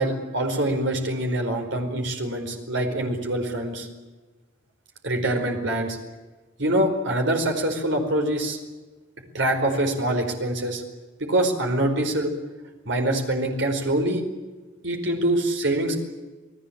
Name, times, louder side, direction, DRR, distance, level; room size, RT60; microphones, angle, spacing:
voice 1, 0.0-3.9 5.0-6.0 6.6-8.6 9.3-10.8 11.2-12.3 12.8-14.2 14.8-16.0, right 1 dB, 55° right, 4 dB, 4.9 m, -24 dB
28.5 x 18.5 x 8.8 m, 1.3 s
head